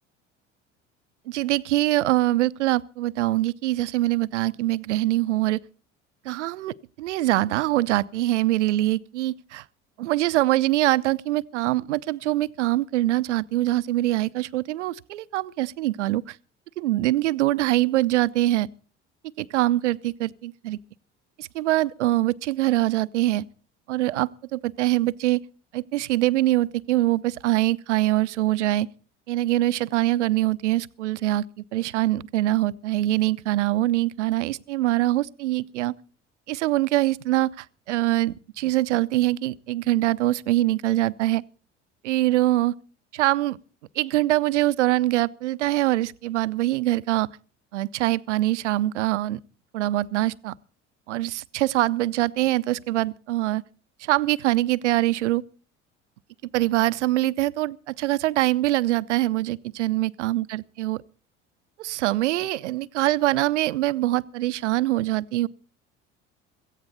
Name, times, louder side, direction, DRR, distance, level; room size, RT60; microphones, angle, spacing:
voice 1, 1.3-5.6 6.2-9.6 10.0-16.4 16.8-18.7 19.4-20.8 21.4-23.4 23.9-25.4 25.7-28.9 29.3-35.9 36.5-41.4 42.0-42.7 43.1-43.6 44.0-47.3 47.7-49.4 49.7-50.5 51.1-53.6 54.0-55.4 56.5-61.0 61.8-65.5, right 16 dB, 80° right, 0.6 m, -23 dB
17.5 x 14.5 x 4.1 m
hypercardioid pair, 65°, 35 cm